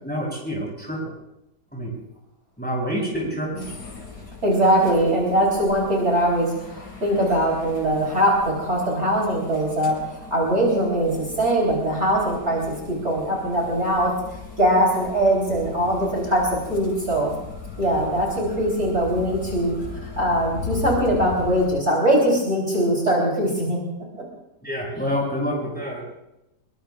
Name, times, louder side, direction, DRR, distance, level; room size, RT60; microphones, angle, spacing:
voice 1, 0.0-1.1 1.7-1.9 2.6-3.6 24.6-26.0, equal, 5° left, -3 dB, 7.1 m, -27 dB
sound 1, 3.6-21.7, left 5 dB, 80° left, 4.5 m, -38 dB
voice 2, 4.4-14.1 14.6-17.3 17.8-23.8, right 1 dB, 40° right, -3 dB, 4.0 m, -21 dB
25.0 x 22.5 x 2.4 m, 0.89 s
omnidirectional pair, 1.8 m